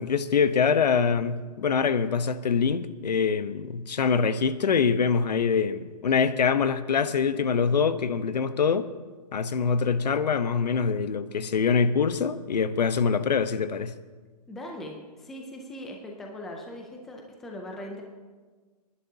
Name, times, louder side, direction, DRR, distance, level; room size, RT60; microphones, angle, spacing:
voice 1, 0.0-8.9 9.3-13.9, left 6 dB, 85° left, 13 dB, 0.9 m, -24 dB
voice 2, 14.5-18.0, left 1 dB, ahead, 1 dB, 0.4 m, -40 dB
27.0 x 11.0 x 2.8 m, 1.4 s
hypercardioid pair, 165°, 21 cm